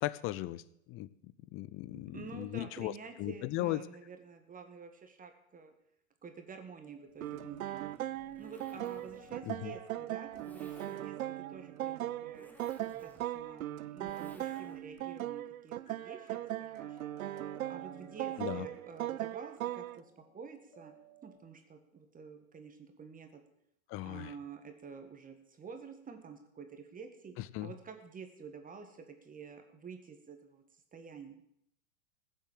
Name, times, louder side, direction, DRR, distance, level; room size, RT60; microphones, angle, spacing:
voice 1, 0.0-0.6 0.9-2.9 3.2-3.8 9.5-9.7 18.4-18.7 23.9-24.3 27.4-27.7, left 16 dB, 30° left, 19 dB, 0.6 m, -37 dB
voice 2, 1.9-5.7 6.2-7.9 8.4-11.2 11.5-12.5 13.0-17.0 17.7-20.9 21.2-23.3 24.0-27.3 27.6-30.6 30.9-31.4, right 5 dB, 20° right, 6 dB, 1.7 m, -49 dB
sound 1, 6.8-21.4, left 2 dB, 85° left, 2.8 m, -61 dB
Zipper (clothing), 7.1-15.0, left 1 dB, 5° left, 1.5 m, -59 dB
sound 2, 7.2-20.0, right 13 dB, 75° right, 0.6 m, -39 dB
15.5 x 7.5 x 7.4 m, 0.74 s
hypercardioid pair, 100°, 43 cm